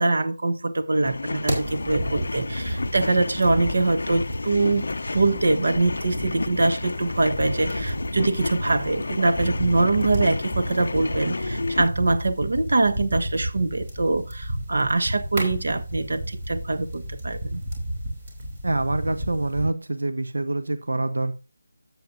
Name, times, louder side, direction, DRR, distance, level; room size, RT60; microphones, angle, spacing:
voice 1, 0.0-17.6, right 2 dB, 60° right, 8 dB, 1.2 m, -23 dB
sound 1, 0.9-11.9, left 3 dB, 60° left, 0.4 m, -31 dB
sound 2, 1.4-19.7, right 1 dB, 25° right, 2.8 m, -32 dB
voice 2, 18.6-21.4, right 2 dB, 85° right, 9 dB, 0.9 m, -26 dB
12.5 x 7.7 x 2.6 m, 0.29 s
figure-of-eight pair, 170°, 0 cm